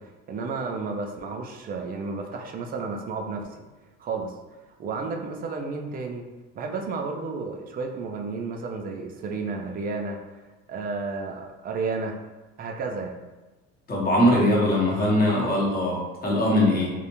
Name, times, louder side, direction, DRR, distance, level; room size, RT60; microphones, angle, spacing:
voice 1, 0.0-3.5 4.0-4.3 4.8-6.2 6.5-12.2 12.6-13.2, right 4 dB, 30° right, 3 dB, 0.4 m, -32 dB
voice 2, 13.9-16.9, left 1 dB, 30° left, -3 dB, 0.8 m, -21 dB
2.4 x 2.1 x 2.9 m, 1.1 s
supercardioid pair, 95°, 32 cm